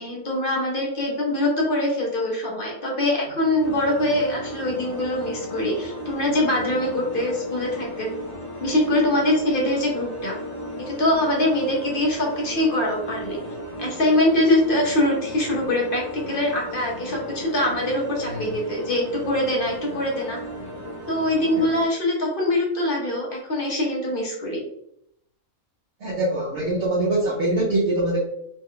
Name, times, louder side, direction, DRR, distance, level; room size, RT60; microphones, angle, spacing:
voice 1, 0.0-8.1 8.6-10.4 10.9-13.4 13.8-20.4 21.1-24.6, left 1 dB, 45° left, -2 dB, 1.0 m, -23 dB
sound 1, 3.6-21.9, left 1 dB, 25° left, 1.2 m, -35 dB
voice 2, 26.0-28.2, right 2 dB, 55° right, -7 dB, 1.0 m, -23 dB
3.1 x 2.3 x 3.7 m, 0.75 s
omnidirectional pair, 1.5 m